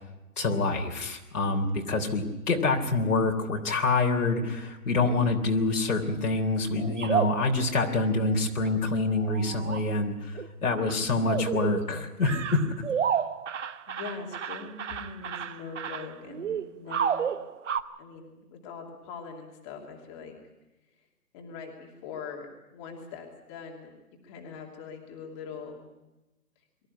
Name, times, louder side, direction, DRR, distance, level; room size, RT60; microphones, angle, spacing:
voice 1, 0.4-10.3 10.6-12.6, left 3 dB, 75° left, 1 dB, 3.6 m, -26 dB
sound 1, 6.8-7.6 8.6-8.7 9.2-9.8 10.4-10.5 10.8-11.0 11.3-11.9 12.2-17.8, right 8 dB, 55° right, 1.0 m, -31 dB
voice 2, 11.0-11.6 13.6-17.4 18.0-20.3 21.3-23.9 24.2-25.9, left 5 dB, 20° left, 1 dB, 2.7 m, -42 dB
23.5 x 14.0 x 9.7 m, 1.0 s
hypercardioid pair, 165°, 45 cm